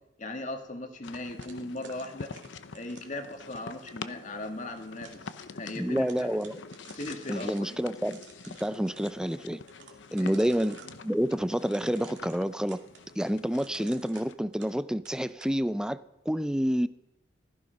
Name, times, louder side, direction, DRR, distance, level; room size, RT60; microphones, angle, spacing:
voice 1, 0.2-2.3 2.7-6.4 7.0-7.7 10.2-10.4, left 2 dB, 45° left, 1.9 m, -38 dB
sound 1, 1.0-14.3, left 4 dB, 90° left, 0.8 m, -45 dB
sound 2, 1.4-3.8 4.5-5.3 5.6-5.7 6.0-7.6 8.0-9.1 9.7-11.0 11.7-14.8 15.1-15.5, right 6 dB, 80° right, 2.3 m, -53 dB
voice 2, 5.8-6.6 7.3-8.2 8.6-9.6 10.1-12.8 13.2-16.0 16.3-16.9, equal, 5° right, 0.4 m, -28 dB
16.5 x 14.0 x 5.3 m
head